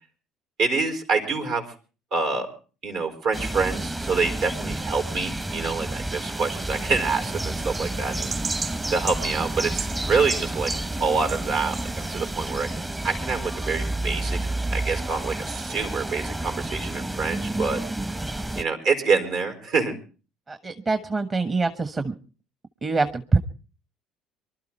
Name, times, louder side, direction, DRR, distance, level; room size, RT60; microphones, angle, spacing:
voice 1, 0.6-1.6 2.1-2.5 2.8-8.3 8.9-10.7 11.0-17.8 18.5-19.9, right 4 dB, 70° right, 4 dB, 4.6 m, -26 dB
sound 1, 3.3-18.6, right 1 dB, 15° right, 0.9 m, -30 dB
sound 2, 6.3-12.5, right 5 dB, 50° right, 3.0 m, -37 dB
voice 2, 20.5-22.1 22.8-23.4, right 3 dB, 35° right, 9 dB, 1.3 m, -24 dB
24.0 x 12.5 x 4.4 m, 0.37 s
hypercardioid pair, 70°, 0 cm